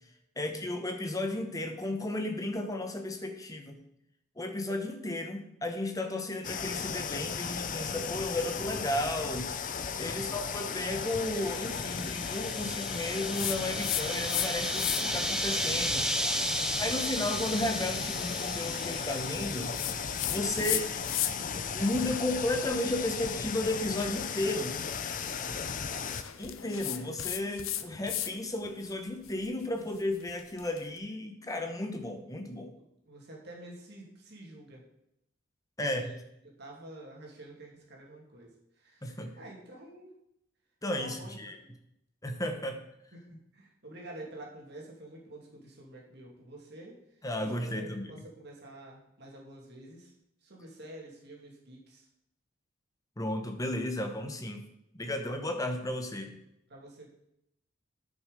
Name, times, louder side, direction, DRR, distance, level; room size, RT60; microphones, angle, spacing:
voice 1, 0.4-3.8 4.4-16.0 16.8-19.8 20.2-20.8 21.7-24.8 26.4-32.7 35.8-36.1 39.0-39.3 40.8-41.6 42.2-42.8 47.2-48.1 53.2-54.6 54.9-56.3, left 1 dB, 15° left, 5 dB, 1.0 m, -34 dB
sound 1, 6.4-26.2, left 6 dB, 40° left, 0.6 m, -36 dB
voice 2, 10.1-10.4 16.6-17.0 20.6-20.8 21.3-21.7 25.4-26.0 29.8-29.9 32.7-34.8 36.0-36.2 36.6-40.1 41.0-41.4 41.6-41.7 43.1-46.9 47.4-50.1 50.4-52.1 56.7-57.1, right 1 dB, 55° right, -2 dB, 2.7 m, -48 dB
sound 2, 10.5-20.3, right 1 dB, 5° right, 0.5 m, -35 dB
Queneau Frottement feuille, 13.3-14.5 14.7-15.3 15.8-21.6 21.9-28.3 28.6-30.8, left 13 dB, 85° left, 0.6 m, -37 dB
9.9 x 6.5 x 5.3 m, 0.80 s
head